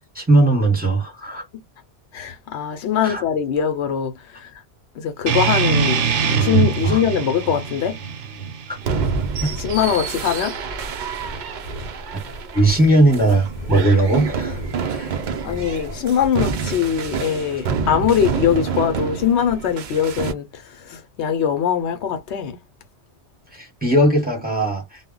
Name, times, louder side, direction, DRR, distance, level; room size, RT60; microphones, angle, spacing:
voice 1, 0.1-1.4 3.0-3.2 6.8-7.0 8.7-8.8 9.4-9.6 12.1-12.2 12.5-14.6 14.9-15.1 23.5-25.0, right 2 dB, 10° right, 0.9 m, -18 dB
voice 2, 2.1-4.6 4.9-8.0 9.4-10.6 15.4-22.6, left 8 dB, 75° left, 0.9 m, -22 dB
sound 1, 5.3-10.3, right 6 dB, 80° right, 0.9 m, -23 dB
sound 2, 8.8-20.3, right 5 dB, 55° right, 0.6 m, -28 dB
sound 3, 11.0-16.3, equal, 45° left, 0.8 m, -37 dB
2.2 x 2.0 x 3.7 m
omnidirectional pair, 1.2 m